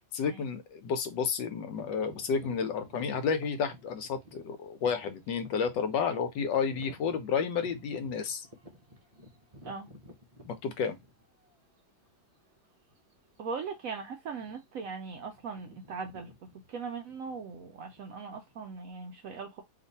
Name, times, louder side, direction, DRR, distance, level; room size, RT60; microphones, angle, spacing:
voice 1, 0.1-8.4 10.5-11.0, left 6 dB, 80° left, 1.4 m, -31 dB
sound 1, 1.7-11.5 12.1-12.2 12.9-13.1 13.4-13.6 14.3-14.8 15.1-18.5, equal, 50° right, 0.4 m, -52 dB
voice 2, 13.4-19.6, right 5 dB, 70° right, 0.8 m, -40 dB
3.0 x 2.6 x 4.0 m
omnidirectional pair, 1.9 m